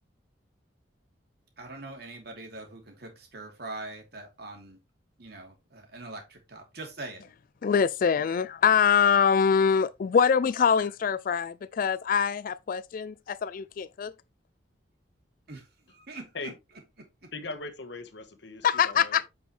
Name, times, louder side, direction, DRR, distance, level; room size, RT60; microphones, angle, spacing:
voice 1, 1.6-4.8 5.2-7.3 15.5-16.5 17.0-17.3, right 2 dB, 55° right, 2.7 m, -43 dB
voice 2, 7.6-14.1 18.6-19.3, left 7 dB, 45° left, 0.3 m, -24 dB
voice 3, 17.3-19.2, left 3 dB, 70° left, 1.3 m, -39 dB
8.7 x 5.4 x 3.3 m
head